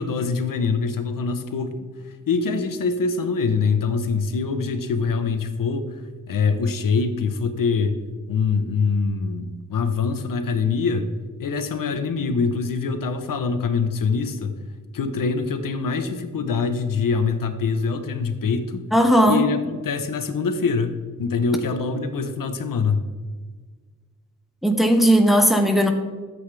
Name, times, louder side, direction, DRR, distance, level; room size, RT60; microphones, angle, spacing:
voice 1, 0.0-1.7 2.0-6.0 6.3-8.0 8.3-11.1 11.4-14.6 14.9-18.9 19.2-23.0, left 5 dB, 80° left, 8 dB, 0.9 m, -24 dB
voice 2, 18.9-19.5 24.6-25.9, equal, ahead, 4 dB, 1.0 m, -17 dB
13.0 x 8.0 x 3.4 m, 1.4 s
wide cardioid pair, 150°, 33 cm